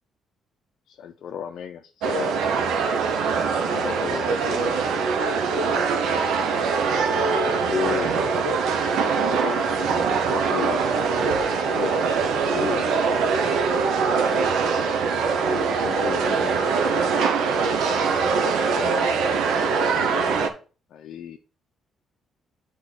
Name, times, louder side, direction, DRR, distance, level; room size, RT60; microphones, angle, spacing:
voice 1, 0.9-2.3 3.6-4.8 5.3-5.8 7.3-8.1 9.3-10.8 11.6-11.9 12.2-13.2 15.3-16.7 17.0-17.3 18.7-19.2 19.7-20.4 20.9-21.4, left 9 dB, 70° left, 3 dB, 0.5 m, -35 dB
sound 1, 2.0-20.5, right 5 dB, 85° right, 0.9 m, -23 dB
8.7 x 3.6 x 4.1 m, 0.37 s
cardioid pair, 90°, 0 cm